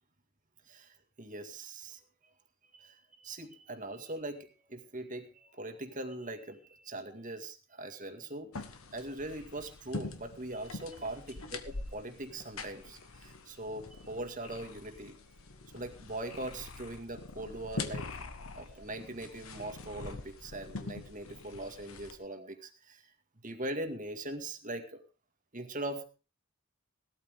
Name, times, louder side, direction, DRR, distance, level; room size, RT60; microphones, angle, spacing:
voice 1, 0.7-2.0 2.7-11.2 11.5-11.6 11.9-15.3 15.7-18.1 18.6-23.1 23.4-25.0 25.5-26.0, right 1 dB, 40° right, 6 dB, 2.0 m, -41 dB
sound 1, 8.5-22.2, left 3 dB, 75° left, 1.5 m, -44 dB
17.5 x 13.0 x 3.7 m, 0.32 s
head